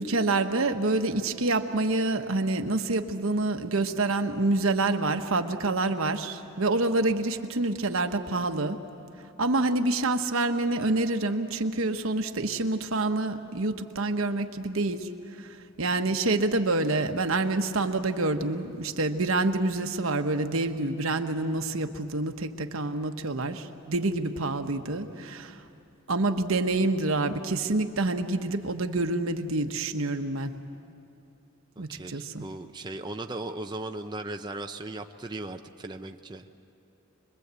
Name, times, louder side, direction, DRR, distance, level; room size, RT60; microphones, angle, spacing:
voice 1, 0.0-8.8 9.4-15.1 15.4-15.5 15.8-25.6 26.1-30.5 31.8-32.4, right 2 dB, 75° right, 7 dB, 1.2 m, -27 dB
voice 2, 24.9-25.3 31.8-36.4, right 2 dB, 20° right, 4 dB, 0.6 m, -38 dB
25.0 x 22.0 x 8.3 m, 2.8 s
head